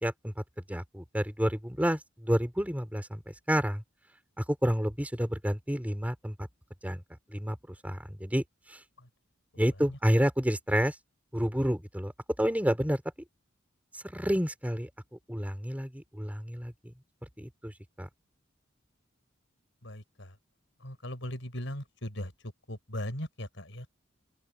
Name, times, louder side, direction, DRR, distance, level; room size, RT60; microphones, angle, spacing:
voice 1, 0.0-3.8 4.4-6.5 6.8-7.0 7.3-8.8 9.6-11.0 11.3-13.0 13.9-16.9 17.4-18.1, equal, 10° right, 5.4 m, -30 dB
voice 2, 19.8-20.4 20.8-23.9, left 1 dB, 70° left, 6.9 m, -39 dB
open air
head